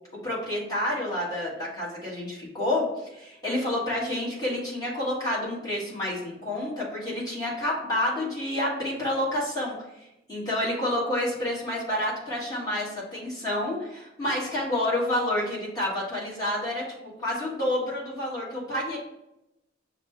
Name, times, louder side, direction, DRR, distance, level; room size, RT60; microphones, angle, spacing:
voice 1, 0.2-9.7 10.3-16.8 17.2-19.0, left 1 dB, 20° left, -7 dB, 1.5 m, -29 dB
5.6 x 2.1 x 4.4 m, 0.89 s
head